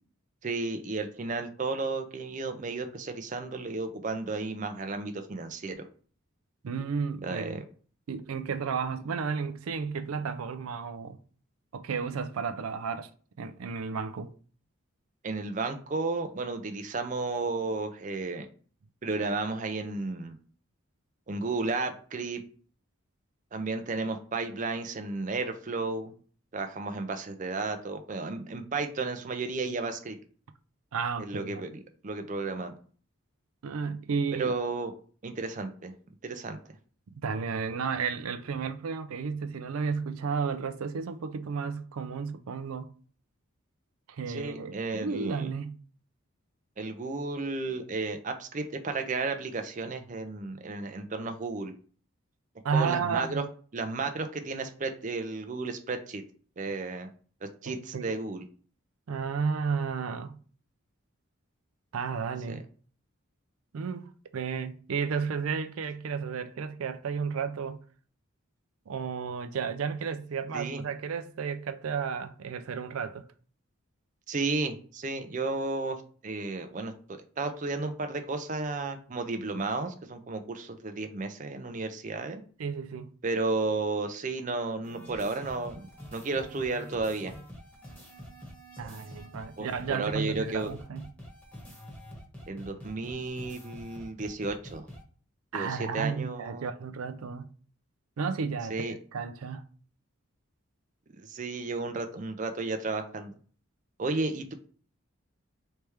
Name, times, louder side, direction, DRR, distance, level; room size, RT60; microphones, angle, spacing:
voice 1, 0.4-5.9 7.2-7.6 15.2-18.5 19.0-20.4 21.3-22.4 23.5-26.1 26.5-30.2 31.2-32.7 34.4-34.9 35.2-35.9 36.2-36.6 44.3-45.5 46.8-51.7 52.7-53.4 53.7-56.2 56.6-57.1 57.4-58.4 62.5-62.6 70.5-70.8 74.3-76.9 77.4-82.4 83.2-87.3 89.6-90.7 92.5-94.9 95.5-96.7 98.7-98.9 101.2-103.3 104.0-104.5, right 3 dB, 35° right, 0.5 m, -33 dB
voice 2, 6.6-7.6 8.1-11.2 11.7-13.1 13.4-14.3 30.9-31.6 33.6-34.5 37.2-42.9 44.1-45.8 52.6-53.4 57.7-58.1 59.1-60.4 61.9-62.6 63.7-67.8 68.9-73.3 82.6-83.1 88.8-91.0 95.5-97.5 98.2-99.6, right 5 dB, 90° right, 0.4 m, -33 dB
sound 1, 84.8-95.0, equal, 10° left, 1.1 m, -46 dB
3.3 x 3.3 x 4.5 m
head